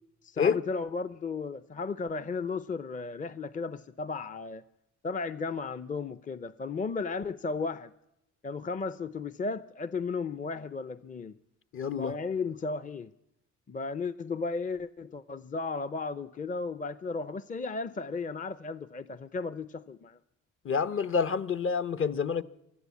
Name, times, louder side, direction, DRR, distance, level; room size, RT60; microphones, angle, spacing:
voice 1, 0.2-4.6 5.0-7.9 8.4-11.3 12.0-13.1 13.7-20.2, left 4 dB, 25° left, 0.6 m, -34 dB
voice 2, 11.7-12.2 20.6-22.4, left 6 dB, 45° left, 1.0 m, -28 dB
24.0 x 13.5 x 8.4 m
cardioid pair, 90°, 30 cm